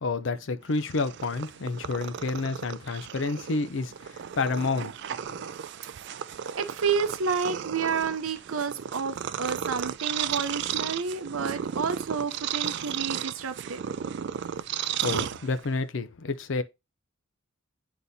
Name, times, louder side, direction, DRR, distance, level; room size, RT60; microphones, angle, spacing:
voice 1, 0.0-4.9 5.4-5.5 14.7-16.6, left 3 dB, 65° left, 0.6 m, -30 dB
Purr, 0.7-15.9, right 9 dB, 55° right, 0.3 m, -34 dB
voice 2, 6.5-13.8, right 5 dB, 85° right, 0.6 m, -30 dB
9.6 x 4.0 x 2.7 m
head